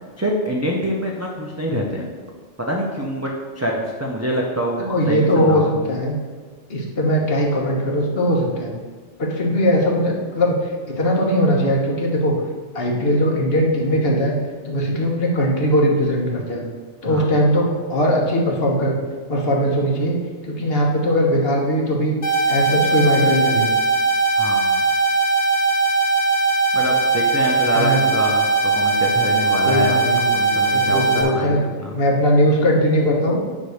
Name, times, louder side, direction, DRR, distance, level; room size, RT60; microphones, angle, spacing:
voice 1, 0.2-2.1 2.6-6.0 17.1-17.3 24.4-24.8 26.7-30.0 30.3-31.9, equal, 15° right, -2 dB, 0.6 m, -25 dB
voice 2, 4.8-6.1 6.7-8.7 9.2-12.3 12.7-14.4 14.6-16.6 17.0-19.0 19.3-20.2 20.4-22.1 22.5-23.7 27.7-28.0 29.6-30.3 30.7-31.6 31.9-33.4, equal, 55° left, -1 dB, 1.5 m, -19 dB
sound 1, 22.2-31.2, right 3 dB, 80° left, 1.6 m, -19 dB
9.7 x 3.3 x 6.5 m, 1.5 s
omnidirectional pair, 1.2 m